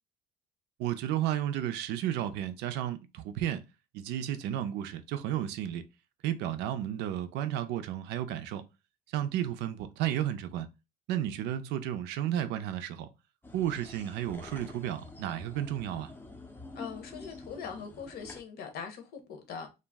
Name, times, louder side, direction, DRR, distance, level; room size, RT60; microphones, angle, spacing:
voice 1, 0.8-3.6 3.9-5.8 6.2-8.6 9.1-10.7 11.1-13.1 13.5-16.1, right 11 dB, 85° right, 0.4 m, -32 dB
sound 1, 13.4-18.4, left 2 dB, 10° left, 0.5 m, -48 dB
voice 2, 16.7-19.7, left 6 dB, 70° left, 0.8 m, -41 dB
2.4 x 2.0 x 3.4 m
cardioid pair, 110°, 17 cm